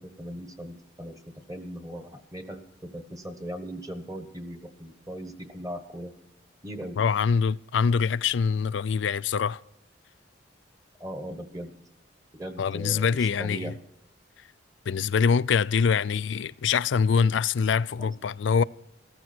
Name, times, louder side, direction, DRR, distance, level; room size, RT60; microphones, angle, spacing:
voice 1, 0.0-6.1 6.6-7.0 11.0-11.7 12.4-13.7 18.0-18.1, equal, 20° right, 1.2 m, -39 dB
voice 2, 7.0-9.6 12.6-13.7 14.9-18.6, left 6 dB, 70° left, 0.4 m, -24 dB
15.0 x 14.0 x 4.4 m
head